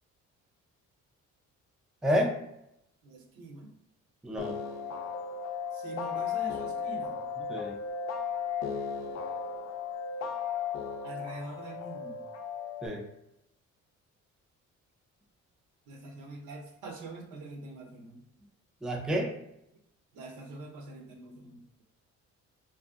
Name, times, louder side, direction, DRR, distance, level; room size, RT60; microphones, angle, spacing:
voice 1, 2.0-2.3 4.2-4.5 7.5-7.8 12.8-13.0 18.8-19.3, equal, ahead, 1 dB, 0.4 m, -29 dB
voice 2, 3.0-3.7 5.7-7.2 11.0-12.2 15.9-18.2 20.1-21.6, right 2 dB, 85° right, 1 dB, 0.7 m, -44 dB
sound 1, 4.4-12.9, left 6 dB, 65° left, 0.5 m, -35 dB
2.6 x 2.5 x 2.4 m, 0.80 s
cardioid pair, 90°, 30 cm